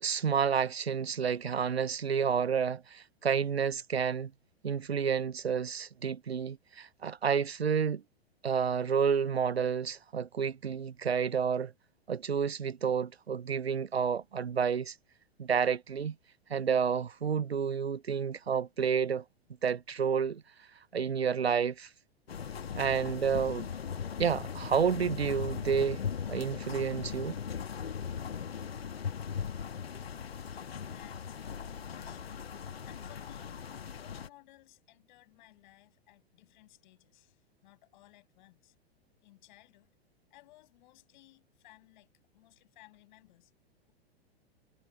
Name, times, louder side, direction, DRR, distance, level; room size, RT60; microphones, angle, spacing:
voice 1, 0.0-4.3 4.6-8.0 8.4-11.7 12.1-14.9 15.4-16.1 16.5-19.2 19.6-20.4 20.9-21.9 22.7-23.7 24.2-26.0 26.3-27.4, right 7 dB, 80° right, 0.8 m, -30 dB
sound 1, 22.3-34.3, left 7 dB, 70° left, 1.5 m, -39 dB
voice 2, 30.5-32.4 32.8-33.6 33.9-38.7 39.2-40.0 40.3-43.5, left 18 dB, 50° left, 7.6 m, -59 dB
figure-of-eight pair, 100°, 31 cm